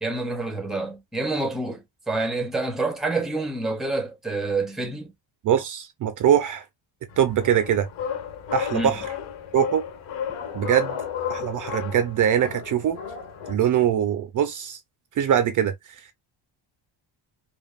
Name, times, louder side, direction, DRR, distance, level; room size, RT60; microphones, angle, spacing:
voice 1, 0.0-5.1 8.7-8.9, right 2 dB, ahead, 0.7 m, -27 dB
voice 2, 5.4-6.6 7.2-7.9 8.5-9.0 9.5-9.8 10.5-11.0 11.3-13.0 13.5-14.8 15.2-15.7, right 9 dB, 45° right, 0.5 m, -22 dB
sound 1, 7.1-13.5, left 8 dB, 75° left, 1.8 m, -33 dB
5.2 x 2.4 x 2.4 m
cardioid pair, 170°, 46 cm